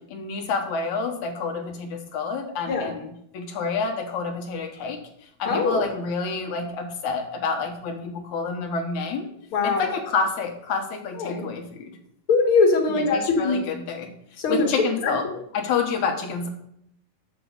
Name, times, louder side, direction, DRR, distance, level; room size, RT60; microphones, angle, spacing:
voice 1, 0.1-5.0 5.4-9.3 9.6-12.0 13.0-14.1 14.5-15.2 15.5-16.5, left 5 dB, 65° left, 3 dB, 2.3 m, -28 dB
voice 2, 5.5-5.8 9.5-9.9 11.2-11.5 12.3-13.6 14.4-15.1, left 3 dB, 45° left, 1 dB, 2.0 m, -22 dB
7.1 x 6.8 x 6.7 m, 0.74 s
omnidirectional pair, 4.1 m